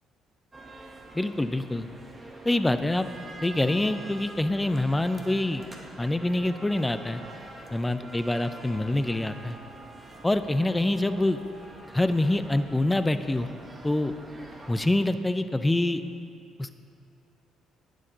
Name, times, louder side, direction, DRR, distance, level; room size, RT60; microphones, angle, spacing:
sound 1, 0.5-14.9, right 1 dB, 25° right, 1.5 m, -45 dB
voice 1, 1.1-1.9 2.4-3.1 3.4-5.6 6.0-7.2 7.7-9.6 10.2-11.4 11.9-13.5 13.8-14.1 14.7-16.0 16.6-16.7, left 1 dB, 15° left, 11 dB, 0.6 m, -25 dB
9.8 x 9.8 x 3.9 m, 2.7 s
hypercardioid pair, 50°, 0 cm